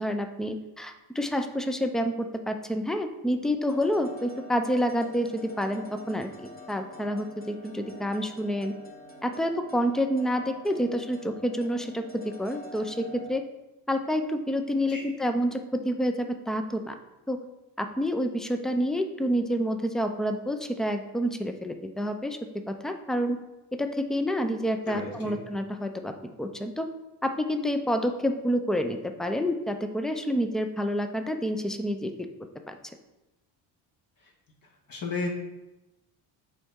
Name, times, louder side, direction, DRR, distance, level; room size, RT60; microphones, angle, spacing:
voice 1, 0.0-8.7 9.2-13.4 13.9-16.9 17.3-17.4 17.8-22.4 22.7-23.4 23.8-26.1 26.4-26.9 27.2-32.3 32.7-32.8, equal, ahead, 6 dB, 0.4 m, -28 dB
sound 1, 3.7-13.3, left 1 dB, 20° left, 1.1 m, -46 dB
voice 2, 24.9-25.4 34.9-35.3, left 3 dB, 45° left, -2 dB, 1.6 m, -33 dB
6.8 x 4.2 x 3.6 m, 0.99 s
supercardioid pair, 85°, 48 cm